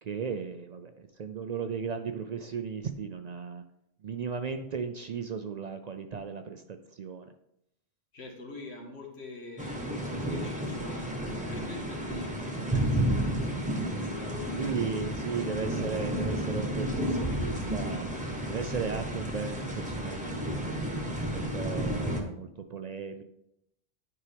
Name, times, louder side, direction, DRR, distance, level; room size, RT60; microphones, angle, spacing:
voice 1, 0.0-3.6 4.0-7.3 12.6-12.8 14.5-18.1 18.5-20.7 21.3-23.2, right 6 dB, 55° right, 8 dB, 0.5 m, -36 dB
voice 2, 8.1-13.3 14.0-15.3, left 3 dB, 85° left, 1 dB, 1.7 m, -44 dB
sound 1, 9.6-22.2, right 1 dB, 10° right, 1.0 m, -32 dB
9.7 x 4.6 x 3.4 m, 0.78 s
omnidirectional pair, 1.1 m